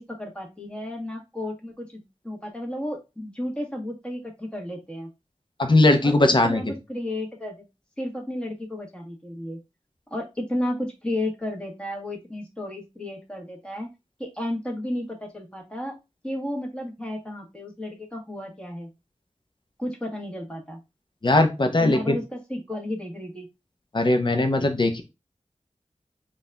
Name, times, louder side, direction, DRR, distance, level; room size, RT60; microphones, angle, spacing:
voice 1, 0.0-5.1 6.0-6.1 6.4-7.6 8.0-9.6 10.1-13.9 14.2-15.9 16.2-18.9 19.8-20.8 21.8-23.5, left 1 dB, 10° left, 0 dB, 1.4 m, -33 dB
voice 2, 5.6-6.6 21.2-22.2 23.9-25.0, left 2 dB, 40° left, 6 dB, 0.8 m, -19 dB
4.0 x 2.6 x 3.3 m, 0.25 s
wide cardioid pair, 60°, 12 cm